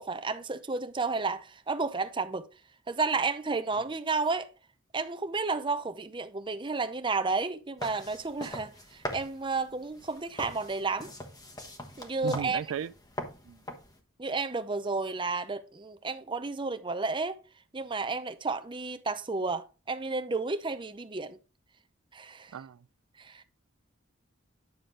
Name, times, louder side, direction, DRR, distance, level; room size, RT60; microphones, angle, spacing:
voice 1, 0.0-2.5 2.9-4.5 4.9-11.1 12.0-12.6 14.2-17.4 17.7-21.4 22.1-22.6 23.2-23.4, right 4 dB, 25° right, 0.7 m, -32 dB
sound 1, 7.8-14.0, left 1 dB, 20° left, 1.2 m, -42 dB
voice 2, 12.2-12.9 13.4-13.6 22.5-22.8, right 7 dB, 85° right, 0.4 m, -35 dB
9.5 x 6.5 x 3.8 m
head